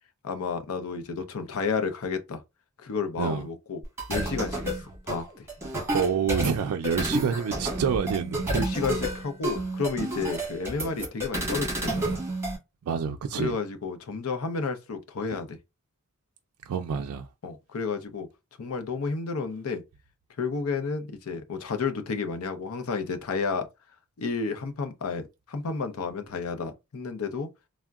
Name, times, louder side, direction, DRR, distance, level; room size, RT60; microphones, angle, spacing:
voice 1, 0.2-2.4 2.8-3.8 4.1-4.8 5.1-5.5 7.0-7.1 8.5-12.2 13.3-15.6 17.4-18.3 18.6-19.8 20.4-23.7 24.2-27.5, left 4 dB, 70° left, 0.6 m, -31 dB
sound 1, 3.8-12.6, right 1 dB, 10° right, 1.1 m, -30 dB
voice 2, 5.9-8.6 12.9-13.6 16.7-17.3, right 7 dB, 80° right, 0.3 m, -27 dB
3.6 x 2.0 x 2.3 m
head